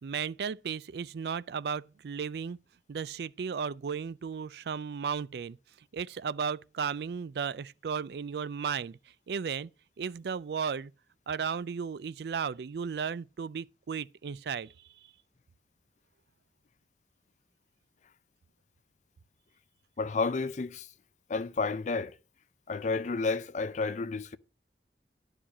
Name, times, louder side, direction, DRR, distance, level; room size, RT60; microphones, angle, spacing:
voice 1, 0.0-2.6 2.9-5.6 5.9-9.0 9.3-9.7 10.0-10.9 11.3-14.7, right 6 dB, 65° right, 0.4 m, -34 dB
voice 2, 20.0-20.9 21.3-22.1 22.7-24.4, left 4 dB, 45° left, 0.5 m, -31 dB
11.5 x 5.0 x 5.9 m
head